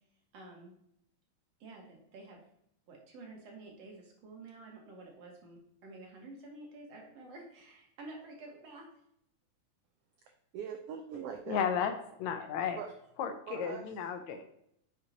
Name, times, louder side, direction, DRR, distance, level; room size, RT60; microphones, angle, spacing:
voice 1, 0.3-0.8 1.6-2.4 2.9-8.9, right 2 dB, 60° right, 0 dB, 2.6 m, -50 dB
voice 2, 10.5-11.6 12.7-12.9 13.5-13.9, right 7 dB, 75° right, 4 dB, 1.4 m, -41 dB
voice 3, 11.5-11.9 12.2-12.8 13.2-14.4, left 7 dB, 75° left, 7 dB, 2.0 m, -33 dB
9.6 x 6.2 x 2.9 m, 0.74 s
omnidirectional pair, 3.4 m